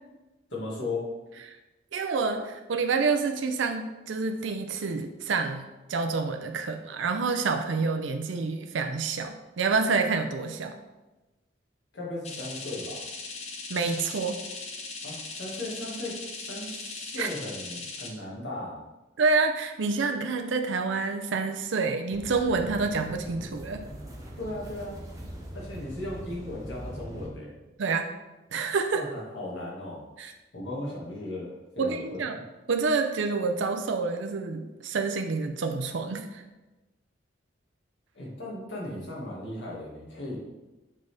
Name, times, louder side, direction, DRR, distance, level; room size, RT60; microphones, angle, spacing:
voice 1, 0.5-1.0 11.9-13.0 15.0-18.8 24.4-25.0 25.5-27.5 28.9-30.0 30.5-32.2 38.1-40.4, left 2 dB, 75° left, -4 dB, 1.9 m, -36 dB
voice 2, 1.9-10.7 13.7-14.4 17.2-17.3 19.2-23.8 27.8-28.1 28.5-29.0 30.2-30.3 31.8-32.4 32.7-36.4, right 4 dB, 80° right, 6 dB, 0.5 m, -28 dB
sound 1, 12.2-18.1, left 3 dB, 35° left, 0.8 m, -39 dB
sound 2, 22.1-27.3, equal, 15° right, 1.0 m, -41 dB
7.4 x 4.0 x 3.4 m, 1.1 s
head